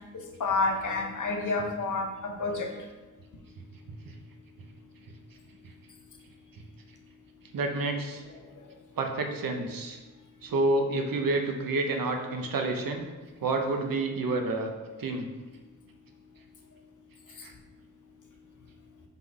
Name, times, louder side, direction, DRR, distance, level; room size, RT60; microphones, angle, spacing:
voice 1, 0.4-2.7, left 3 dB, 65° left, 3 dB, 0.9 m, -29 dB
voice 2, 7.5-8.2 9.0-10.0 10.4-13.1 13.4-14.7 15.0-15.3 17.4-17.5, right 2 dB, 85° right, 4 dB, 0.9 m, -29 dB
5.8 x 3.8 x 4.7 m, 1.3 s
wide cardioid pair, 155°, 33 cm